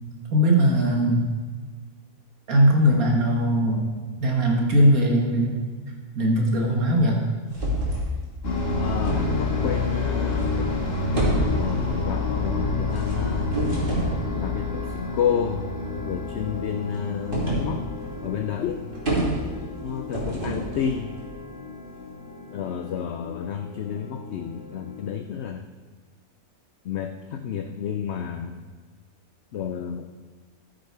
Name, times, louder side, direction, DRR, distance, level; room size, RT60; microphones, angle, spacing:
voice 1, 0.3-1.2 2.5-3.8 4.2-5.6 6.2-7.2, equal, 75° right, 0 dB, 1.9 m, -20 dB
sound 1, 7.5-8.1 8.6-9.6 10.2-10.8 11.1-11.9 12.9-14.2 17.3-17.7 18.0-18.1 18.4-18.5 18.7-19.7 20.1-21.4, right 1 dB, 35° right, 2.6 m, -27 dB
sound 2, 8.4-25.1, left 3 dB, 45° left, 1.9 m, -29 dB
voice 2, 8.8-10.7 11.5-13.6 14.4-15.7 16.0-17.9 18.2-18.8 19.8-21.2 22.5-25.7 26.8-28.6 29.5-30.1, left 8 dB, 65° left, 7 dB, 0.7 m, -30 dB
13.5 x 6.9 x 4.6 m, 1.4 s
omnidirectional pair, 1.6 m